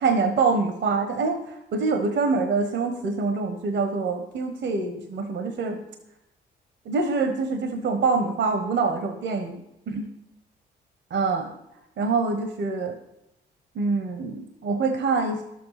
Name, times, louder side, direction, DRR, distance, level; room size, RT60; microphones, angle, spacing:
voice 1, 0.0-5.8 6.8-9.6 9.9-10.1 11.1-11.5 12.0-12.9 13.7-15.4, right 4 dB, 70° right, 7 dB, 1.2 m, -25 dB
11.5 x 7.7 x 5.8 m, 0.89 s
supercardioid pair, 60°, 19 cm